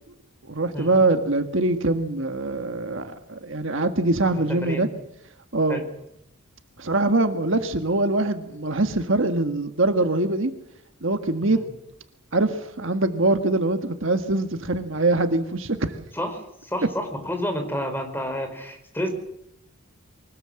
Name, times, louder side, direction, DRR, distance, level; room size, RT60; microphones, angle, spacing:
voice 1, 0.5-4.9 5.5-5.8 6.8-10.5 11.0-11.6 12.3-16.0, right 2 dB, 60° right, 8 dB, 1.6 m, -23 dB
voice 2, 4.4-4.9 5.7-5.8 11.5-11.7 16.1-19.1, equal, 10° left, 6 dB, 4.5 m, -30 dB
24.0 x 19.5 x 7.8 m, 0.81 s
head